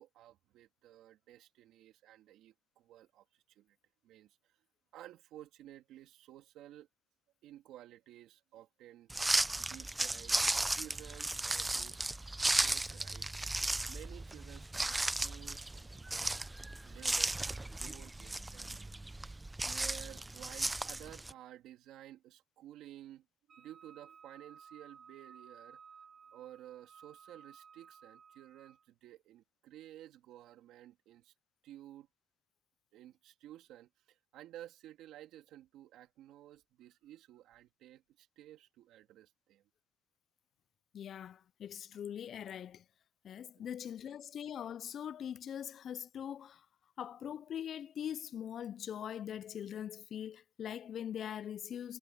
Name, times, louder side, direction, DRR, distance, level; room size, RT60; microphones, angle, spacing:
voice 1, 0.0-3.8 4.0-4.6 4.9-6.9 7.4-9.1 9.6-12.0 12.5-13.3 13.9-16.4 16.8-18.9 19.2-19.4 19.6-23.3 23.5-25.8 26.3-31.3 31.6-32.1 32.9-39.6 43.6-43.7, right 13 dB, 90° right, 3.3 m, -54 dB
sound 1, 9.1-21.3, right 2 dB, 15° right, 0.6 m, -35 dB
Wind instrument woodwind instrument, 23.5-28.8, right 6 dB, 50° right, 5.5 m, -57 dB
voice 2, 40.9-42.8 43.2-46.7 47.0-52.0, left 9 dB, 65° left, 0.4 m, -42 dB
cardioid pair, 90°, 0 cm